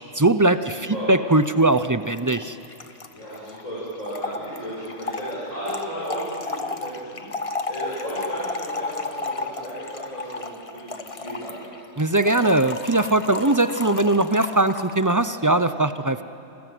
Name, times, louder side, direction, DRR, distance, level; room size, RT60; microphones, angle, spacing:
voice 1, 0.1-2.6 12.0-16.2, right 2 dB, 20° right, 11 dB, 0.5 m, -20 dB
voice 2, 0.7-1.1 3.1-11.6, equal, 90° left, -9 dB, 8.3 m, -34 dB
Trickle dribble / Fill (with liquid), 1.4-1.5 1.7-1.8 2.0-15.1, left 3 dB, 30° left, 1.0 m, -33 dB
29.0 x 25.5 x 7.9 m, 3.0 s
omnidirectional pair, 1.3 m